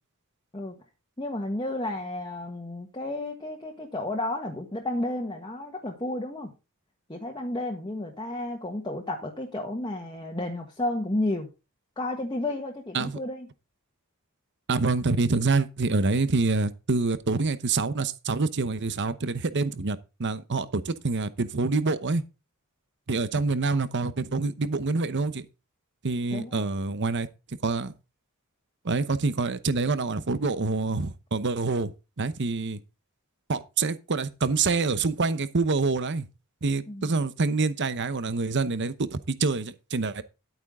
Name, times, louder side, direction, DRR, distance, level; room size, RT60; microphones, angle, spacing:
voice 1, 1.2-6.5 7.1-11.5 12.0-13.5 26.3-26.7 36.9-37.1, left 1 dB, 20° left, 1.5 m, -32 dB
voice 2, 14.7-22.2 23.1-25.5 26.0-27.3 27.6-27.9 28.8-31.9 32.2-32.8 33.5-36.3 36.6-40.2, right 3 dB, 55° right, 0.9 m, -26 dB
11.0 x 8.9 x 3.7 m
head